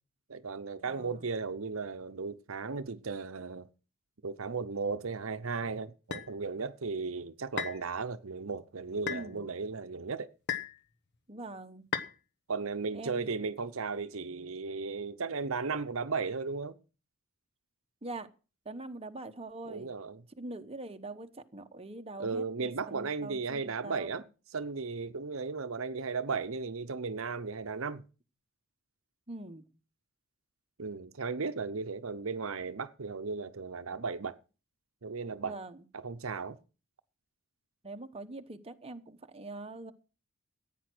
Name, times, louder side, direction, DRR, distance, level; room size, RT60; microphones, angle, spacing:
voice 1, 0.3-3.7 4.2-10.3 12.5-16.8 19.7-20.2 22.2-24.2 24.5-28.0 30.8-34.4 35.0-35.6 35.9-36.6, right 4 dB, 70° right, 0.8 m, -35 dB
voice 2, 0.8-1.2 9.1-9.5 11.3-11.9 12.9-13.3 18.0-18.3 18.6-19.9 20.4-24.2 29.3-29.6 35.4-35.8 37.8-39.9, right 2 dB, 30° right, 1.0 m, -43 dB
sound 1, 6.1-6.3 7.6-7.8 9.1-9.3 10.5-10.8 11.9-12.1, left 6 dB, 55° left, 1.1 m, -34 dB
15.0 x 9.3 x 6.2 m
head